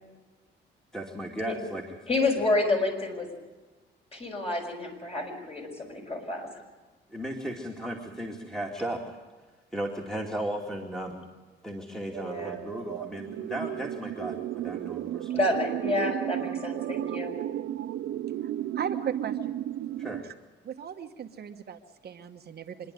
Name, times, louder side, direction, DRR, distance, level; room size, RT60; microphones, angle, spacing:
voice 1, 0.9-2.1 7.1-9.2 9.7-11.3 11.6-15.3 20.0-20.2, right 1 dB, 5° left, 0 dB, 2.4 m, -35 dB
voice 2, 2.1-3.3 4.1-6.6 12.2-12.6 15.3-17.3, left 2 dB, 30° left, 2 dB, 5.8 m, -29 dB
sound 1, 12.1-20.2, right 12 dB, 75° right, 0.6 m, -34 dB
voice 3, 18.4-19.6 20.2-20.3 20.6-22.9, right 8 dB, 55° right, 5 dB, 1.2 m, -37 dB
25.5 x 11.0 x 9.6 m, 1.3 s
cardioid pair, 90°, 20 cm